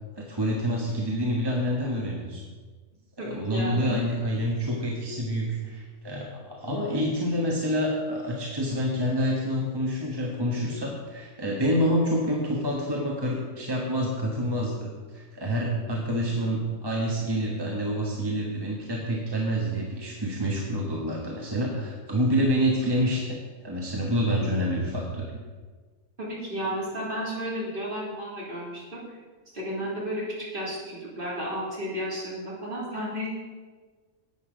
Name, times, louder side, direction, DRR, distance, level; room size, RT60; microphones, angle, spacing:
voice 1, 0.1-2.4 3.2-14.9 15.1-23.4 23.6-25.3 26.6-26.7, equal, 20° right, -2 dB, 1.3 m, -27 dB
voice 2, 3.2-4.0 26.2-29.2 29.5-30.3 30.5-33.3, equal, 40° right, -6 dB, 3.5 m, -33 dB
11.0 x 8.4 x 5.0 m, 1.4 s
omnidirectional pair, 1.4 m